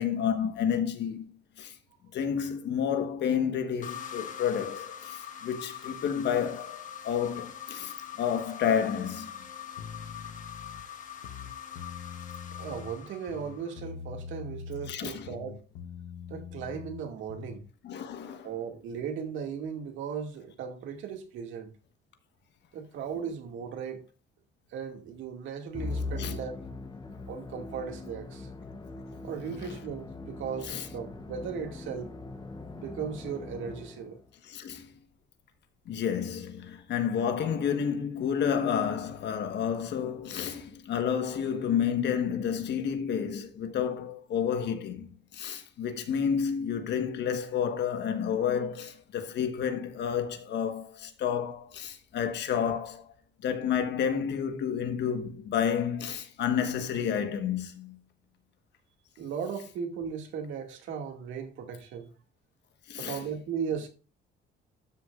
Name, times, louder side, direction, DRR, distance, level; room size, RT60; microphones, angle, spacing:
voice 1, 0.0-1.7 2.1-9.3 14.9-15.3 17.8-18.5 26.2-26.4 30.7-30.9 34.4-34.9 35.8-53.1 53.4-58.0 62.9-63.2, left 8 dB, 60° left, 1.3 m, -30 dB
sound 1, 3.8-13.8, left 9 dB, 40° left, 1.2 m, -43 dB
sound 2, 9.8-10.8 11.2-13.0 13.3-15.0 15.3-17.6, left 6 dB, 85° left, 1.0 m, -43 dB
voice 2, 12.6-15.6 16.3-17.7 18.4-21.7 22.7-24.0 24.7-26.6 27.3-28.5 29.2-32.1 32.7-34.2 59.2-62.1 63.0-63.9, right 7 dB, 75° right, 2.1 m, -37 dB
Musical instrument, 25.7-34.3, left 3 dB, 20° left, 0.9 m, -40 dB
12.5 x 6.4 x 2.4 m
cardioid pair, 145°, 20 cm